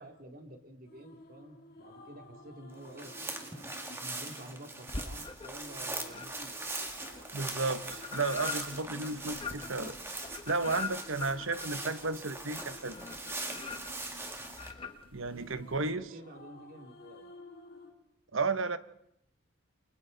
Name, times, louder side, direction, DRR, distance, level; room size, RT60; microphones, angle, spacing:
voice 1, 0.0-3.1 3.9-6.6 15.9-17.3, right 1 dB, 45° right, 4 dB, 2.6 m, -49 dB
echoey wordless female vocal, 0.8-17.9, left 1 dB, 50° left, 2.6 m, -54 dB
sound 1, 2.8-14.7, right 2 dB, 10° right, 2.0 m, -41 dB
sound 2, 4.9-5.7 6.1-15.9, left 4 dB, 25° left, 1.6 m, -43 dB
voice 2, 7.3-9.9 10.5-13.0 15.1-16.1 18.3-18.8, right 3 dB, 70° right, 12 dB, 1.1 m, -33 dB
29.5 x 24.5 x 4.0 m, 0.75 s
head